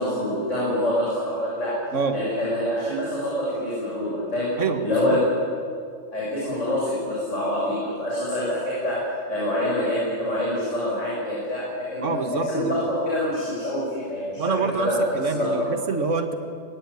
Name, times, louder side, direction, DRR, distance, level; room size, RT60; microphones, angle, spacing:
voice 1, 0.0-1.7 2.1-4.5 4.8-5.2 6.1-9.0 9.3-15.7, left 1 dB, 60° left, -7 dB, 8.0 m, -26 dB
voice 2, 4.6-5.2 12.0-12.8 14.4-16.3, right 4 dB, 60° right, 7 dB, 2.1 m, -26 dB
24.0 x 20.5 x 9.9 m, 2.3 s
omnidirectional pair, 1.4 m